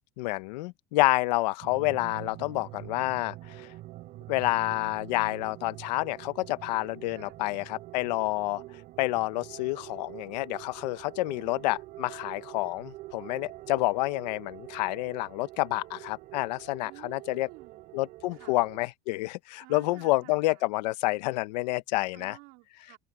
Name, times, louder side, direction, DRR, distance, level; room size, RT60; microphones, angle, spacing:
voice 1, 0.2-3.7 4.3-8.6 9.0-17.5 17.9-22.4, left 20 dB, 85° left, 1.2 m, -29 dB
sound 1, 1.6-18.9, right 17 dB, 40° right, 4.1 m, -46 dB
voice 2, 8.5-8.9 11.4-11.7 16.8-18.0 18.3-18.6 19.6-20.6 22.1-23.0, right 26 dB, 55° right, 4.6 m, -52 dB
open air
cardioid pair, 175°, 21 cm